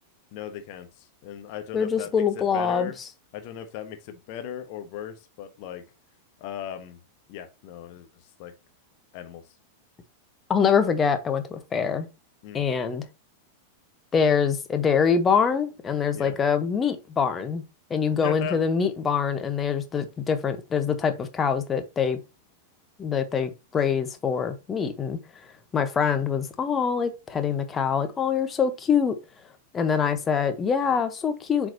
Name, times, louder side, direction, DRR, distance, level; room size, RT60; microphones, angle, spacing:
voice 1, 0.3-3.0 3.3-5.8 6.4-7.0 7.3-8.1 8.4-8.5 9.1-9.4 12.4-12.7 16.1-16.4 18.2-18.6, left 10 dB, 45° left, 1.3 m, -37 dB
voice 2, 1.7-2.9 10.5-12.1 12.5-13.1 14.1-17.6 17.9-22.2 23.0-25.2 25.7-29.2 29.7-31.7, left 6 dB, 20° left, 1.2 m, -24 dB
7.6 x 4.8 x 2.9 m
figure-of-eight pair, 90°, 0 cm